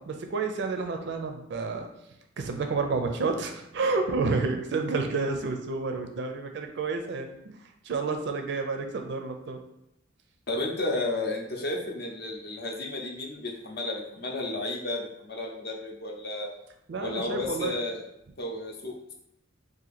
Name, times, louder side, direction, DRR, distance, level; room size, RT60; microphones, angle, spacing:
voice 1, 0.0-1.9 2.4-7.6 7.8-9.6 16.9-17.8, right 4 dB, 60° right, 5 dB, 0.4 m, -30 dB
voice 2, 10.5-16.5 17.0-18.0 18.4-19.1, left 2 dB, 55° left, 0 dB, 0.7 m, -32 dB
2.9 x 2.5 x 4.0 m, 0.83 s
head